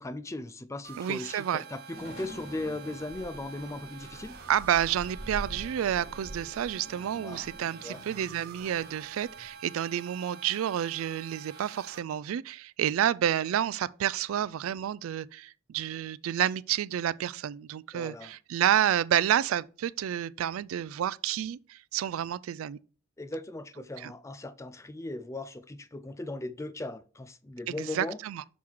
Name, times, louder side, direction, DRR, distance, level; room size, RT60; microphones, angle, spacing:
voice 1, 0.0-4.4 7.2-7.5 7.8-8.0 17.9-18.3 23.2-28.2, left 2 dB, 15° left, 0.4 m, -38 dB
sound 1, 0.8-12.0, right 6 dB, 50° right, 0.8 m, -48 dB
voice 2, 1.0-1.6 4.5-22.8 24.0-24.1 27.7-28.4, right 10 dB, 85° right, 0.3 m, -29 dB
sound 2, 1.9-9.5, equal, 75° left, 3.7 m, -45 dB
6.1 x 3.7 x 4.5 m
head